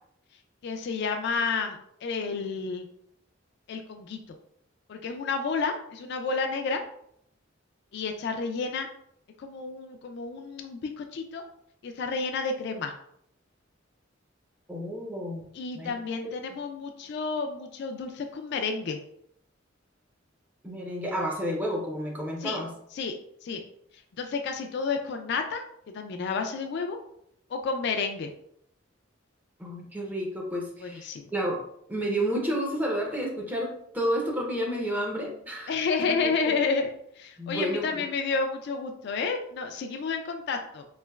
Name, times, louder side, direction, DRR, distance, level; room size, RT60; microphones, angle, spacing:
voice 1, 0.6-2.9 3.7-4.2 4.9-6.8 7.9-8.9 9.4-11.4 11.8-12.9 15.5-19.0 22.4-22.6 22.9-23.1 23.4-23.6 24.2-27.0 27.5-28.3 30.8-31.3 35.7-40.8, left 4 dB, 55° left, 5 dB, 0.3 m, -30 dB
voice 2, 14.7-15.4 15.8-16.0 20.6-22.7 29.6-31.6 31.9-36.1 36.5-36.6 37.4-38.0, equal, 10° right, -1 dB, 0.5 m, -31 dB
3.2 x 2.9 x 2.2 m, 0.71 s
head